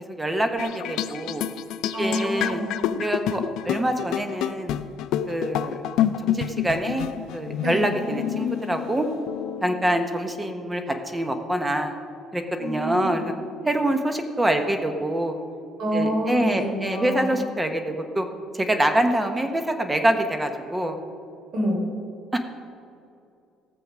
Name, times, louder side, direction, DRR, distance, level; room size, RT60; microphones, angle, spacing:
voice 1, 0.1-1.4 2.0-2.6 3.0-4.7 5.3-5.8 6.2-9.1 9.6-12.0 12.3-13.3 13.6-15.3 15.9-18.3 18.5-21.0 22.3-22.4, right 1 dB, 10° right, 6 dB, 0.9 m, -25 dB
sound 1, 0.6-10.0, left 10 dB, 70° left, 0.5 m, -28 dB
voice 2, 1.9-2.8 7.6-7.8 12.6-13.3 15.8-17.4 21.5-21.8, equal, 50° right, -1 dB, 3.5 m, -27 dB
17.0 x 7.0 x 6.1 m, 2.5 s
cardioid pair, 155°, 0 cm